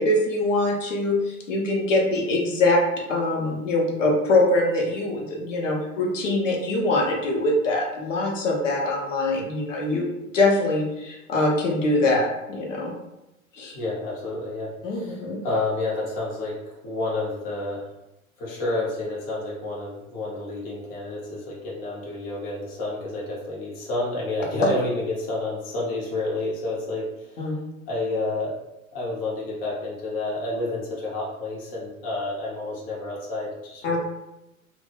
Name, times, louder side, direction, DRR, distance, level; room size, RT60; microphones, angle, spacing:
voice 1, 0.0-2.8 3.1-10.1 10.3-12.9 13.5-13.8 14.8-15.4 27.4-27.6 33.8-34.0, left 2 dB, 60° left, 0 dB, 0.6 m, -23 dB
voice 2, 13.7-16.5 16.8-17.9 18.4-27.4 27.9-28.5 28.9-34.0, left 2 dB, 20° left, -5 dB, 0.6 m, -29 dB
2.1 x 2.0 x 3.2 m, 0.93 s
figure-of-eight pair, 95°, 43 cm